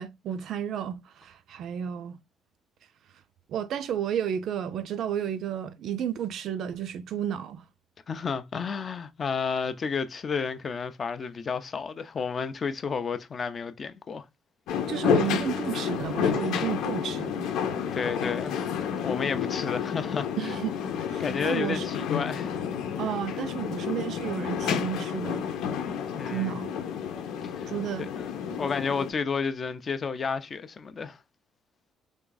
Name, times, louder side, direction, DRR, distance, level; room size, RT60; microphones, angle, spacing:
voice 1, 0.0-2.2 3.5-7.6 14.9-17.5 20.4-20.7 21.1-21.9 23.0-25.5 26.3-26.7 27.7-28.1 28.5-28.6, right 9 dB, 55° right, 0.4 m, -32 dB
voice 2, 8.1-14.2 17.9-18.7 19.0-20.5 21.2-22.5 26.1-26.6 27.4-27.7 28.0-31.2, left 5 dB, 30° left, 0.5 m, -31 dB
sound 1, 14.7-29.1, left 8 dB, 85° left, 0.9 m, -30 dB
3.6 x 3.4 x 3.8 m
cardioid pair, 180°, 0 cm